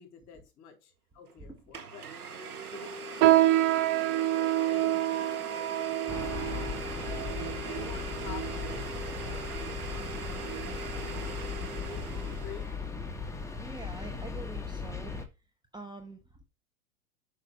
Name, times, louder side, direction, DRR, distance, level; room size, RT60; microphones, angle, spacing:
voice 1, 0.0-2.1 2.7-10.0 11.7-12.7, left 8 dB, 40° left, 3.8 m, -49 dB
Domestic sounds home sounds, 1.3-1.4 1.7-12.8, right 3 dB, 90° right, 1.9 m, -40 dB
sound 1, 3.2-8.9 9.5-9.7 10.4-10.7 11.1-11.3 12.0-12.1, right 15 dB, 45° right, 0.9 m, -27 dB
sound 2, 6.1-15.3, left 5 dB, 5° left, 1.3 m, -37 dB
voice 2, 13.6-15.2 15.7-16.4, right 3 dB, 10° right, 0.9 m, -45 dB
6.5 x 5.9 x 5.6 m
hypercardioid pair, 100°, 44 cm